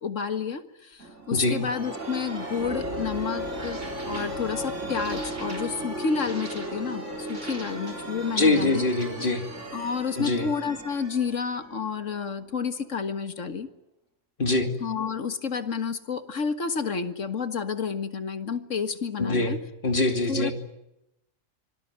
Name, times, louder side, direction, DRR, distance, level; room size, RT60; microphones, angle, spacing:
voice 1, 0.0-8.9 9.7-13.7 14.8-19.6 20.3-20.5, left 5 dB, 70° left, 10 dB, 1.9 m, -30 dB
sound 1, 1.0-12.5, right 1 dB, 65° right, 4.4 m, -35 dB
voice 2, 8.4-9.4 10.2-10.5 14.4-14.7 19.2-19.5 19.8-20.5, left 2 dB, 40° left, 6 dB, 2.8 m, -23 dB
25.5 x 19.0 x 9.5 m, 0.87 s
omnidirectional pair, 1.3 m